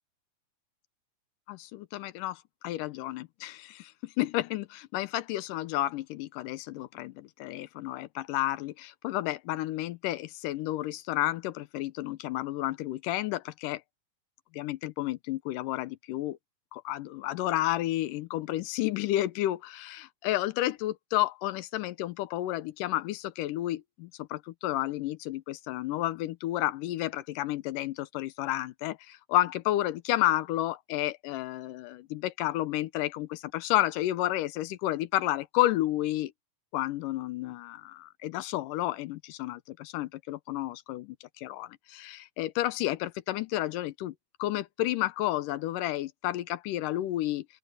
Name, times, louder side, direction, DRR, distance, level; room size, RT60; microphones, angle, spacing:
voice 1, 1.5-13.8 14.5-16.4 16.7-36.3 36.7-44.1 44.4-47.5, left 15 dB, 90° left, 2.4 m, -31 dB
open air
omnidirectional pair, 3.8 m